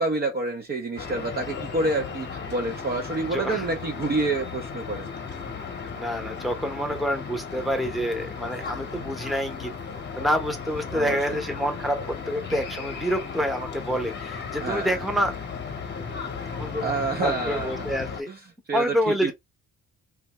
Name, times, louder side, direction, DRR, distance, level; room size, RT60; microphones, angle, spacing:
voice 1, 0.0-5.1 10.9-11.4 14.6-15.0 16.8-17.7 18.3-18.4 18.7-19.3, right 2 dB, 35° right, 0.6 m, -28 dB
sound 1, 1.0-18.2, left 5 dB, 35° left, 0.9 m, -35 dB
voice 2, 3.3-3.6 5.9-9.7 10.2-15.3 16.6-17.0 17.2-18.3 18.7-19.3, equal, ahead, 0.8 m, -27 dB
2.6 x 2.3 x 2.9 m
cardioid pair, 90°, 30 cm